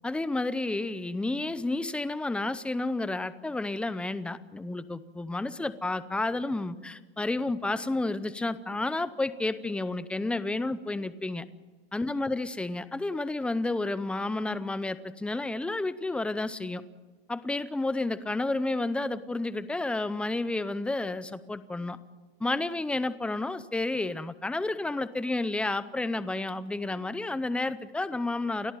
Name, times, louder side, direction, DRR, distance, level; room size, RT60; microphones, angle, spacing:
voice 1, 0.0-11.4 11.9-16.8 17.3-22.0 22.4-28.7, left 2 dB, 5° left, 14 dB, 0.7 m, -31 dB
30.0 x 13.0 x 8.9 m, 1.4 s
supercardioid pair, 150°, 30 cm